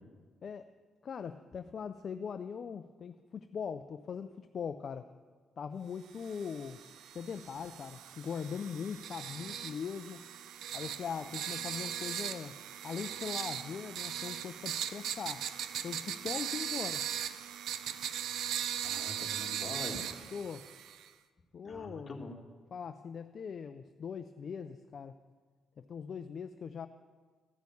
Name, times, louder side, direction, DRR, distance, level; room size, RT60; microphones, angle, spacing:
voice 1, 1.0-5.1 5.6-6.8 7.1-10.2 10.7-15.5 15.8-17.0 20.3-20.7 21.5-22.2 22.7-25.2 25.8-26.9, left 6 dB, 50° left, 9 dB, 0.4 m, -41 dB
sound 1, 6.2-21.1, right 10 dB, 80° right, 0.5 m, -39 dB
voice 2, 18.8-20.3 21.6-22.4, left 2 dB, 35° left, 1 dB, 2.0 m, -44 dB
14.0 x 6.3 x 8.4 m, 1.5 s
cardioid pair, 90°, 0 cm